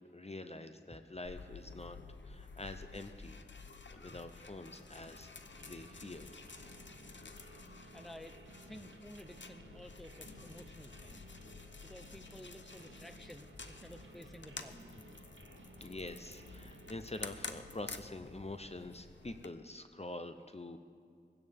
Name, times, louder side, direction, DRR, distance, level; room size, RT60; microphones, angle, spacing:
voice 1, 0.0-2.0 2.2-3.4 3.9-6.3 15.8-20.8, left 2 dB, 35° left, 8 dB, 0.7 m, -46 dB
sound 1, 1.2-19.5, left 4 dB, 75° left, 0.8 m, -51 dB
sound 2, 5.5-17.3, right 2 dB, 85° right, 0.9 m, -58 dB
voice 2, 7.9-8.4 8.7-11.2 11.8-15.0, equal, ahead, 8 dB, 0.8 m, -53 dB
20.5 x 16.5 x 3.6 m, 2.3 s
wide cardioid pair, 45°, 19 cm